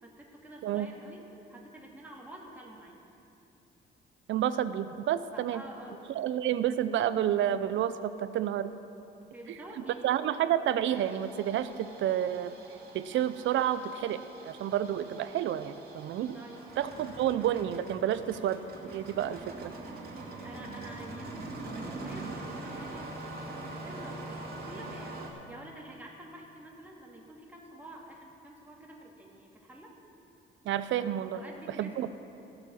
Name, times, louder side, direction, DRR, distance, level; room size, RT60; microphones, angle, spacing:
voice 1, 0.0-3.0 5.3-6.3 9.3-10.1 16.3-16.6 16.9-17.0 20.4-23.1 23.8-30.0 31.3-32.1, right 1 dB, 10° right, -2 dB, 2.1 m, -48 dB
voice 2, 4.3-5.6 6.1-8.7 10.0-12.5 12.9-16.4 16.8-18.6 18.9-19.7 30.6-31.4 31.8-32.1, right 10 dB, 75° right, 13 dB, 0.6 m, -30 dB
Engine starting, 10.8-25.3, right 2 dB, 50° right, 2.5 m, -43 dB
15.0 x 7.1 x 6.3 m, 2.8 s
cardioid pair, 90°, 20 cm